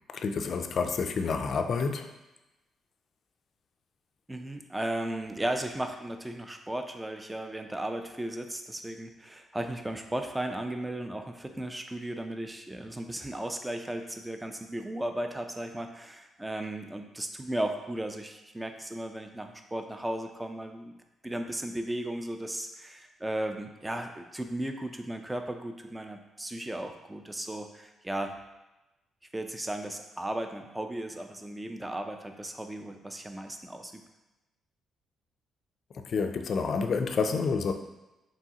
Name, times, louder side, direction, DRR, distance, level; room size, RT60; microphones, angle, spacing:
voice 1, 0.1-2.1 35.9-37.7, left 5 dB, 55° left, 7 dB, 0.4 m, -29 dB
voice 2, 4.3-20.9 21.2-28.3 29.3-34.0, right 1 dB, 10° right, 5 dB, 0.4 m, -35 dB
4.7 x 3.1 x 2.8 m, 1.0 s
cardioid pair, 90°, 0 cm